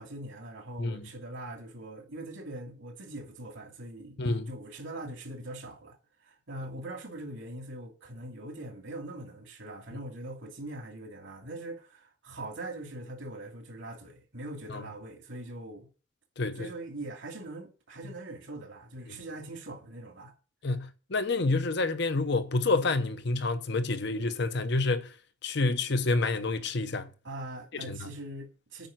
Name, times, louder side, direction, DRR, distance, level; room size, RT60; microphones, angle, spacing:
voice 1, 0.0-6.0 6.2-15.9 16.5-20.3 27.2-28.9, right 1 dB, 70° right, 2.7 m, -42 dB
voice 2, 4.2-4.5 14.7-14.8 16.4-16.7 20.6-25.1 25.4-27.1 27.7-28.1, left 3 dB, 55° left, 0.8 m, -28 dB
8.8 x 5.5 x 7.7 m
head